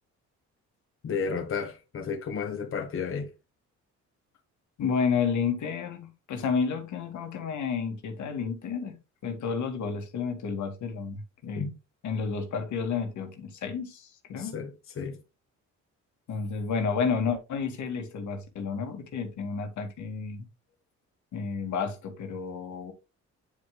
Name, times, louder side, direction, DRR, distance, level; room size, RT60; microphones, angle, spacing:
voice 1, 1.0-3.3 11.6-11.8 14.4-15.2, left 5 dB, 45° left, 1.2 m, -32 dB
voice 2, 4.8-9.0 9.2-11.7 12.0-14.6 16.3-20.5 21.3-22.9, left 5 dB, 75° left, 1.9 m, -31 dB
9.5 x 5.0 x 2.2 m
cardioid pair, 90°, 30 cm